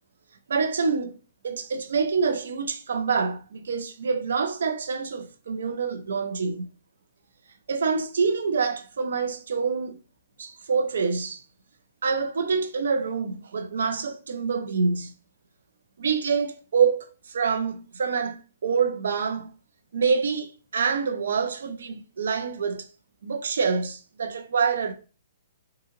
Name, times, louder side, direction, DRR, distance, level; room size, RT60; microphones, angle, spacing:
voice 1, 0.5-1.1 1.4-6.7 7.7-10.0 10.4-11.4 12.0-15.1 16.0-19.5 19.9-22.9 23.2-24.9, right 5 dB, 80° right, 0.5 m, -26 dB
3.7 x 2.8 x 2.6 m
hypercardioid pair, 155°, 0 cm